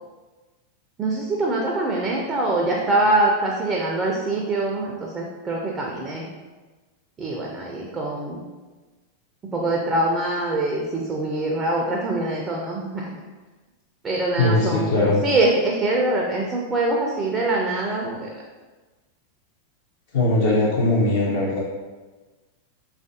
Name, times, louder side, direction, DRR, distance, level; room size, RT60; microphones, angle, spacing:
voice 1, 1.0-6.3 7.2-8.5 9.4-13.1 14.0-18.4, right 2 dB, 20° right, -1 dB, 0.4 m, -24 dB
voice 2, 14.4-15.2 20.1-21.6, left 2 dB, 55° left, -6 dB, 0.5 m, -20 dB
3.2 x 2.4 x 2.6 m, 1.3 s
figure-of-eight pair, 90°, 0 cm